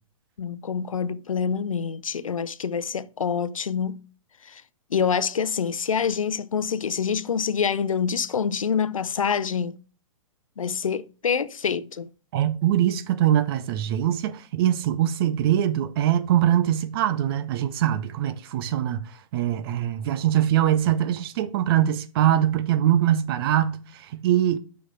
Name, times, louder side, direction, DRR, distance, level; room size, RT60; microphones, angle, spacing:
voice 1, 0.4-4.0 4.4-4.6 4.9-9.8 10.6-12.1, left 6 dB, 80° left, 0.6 m, -26 dB
voice 2, 12.3-19.0 19.3-24.6, right 11 dB, 45° right, 0.7 m, -23 dB
6.3 x 6.0 x 4.6 m
hypercardioid pair, 120°, 17 cm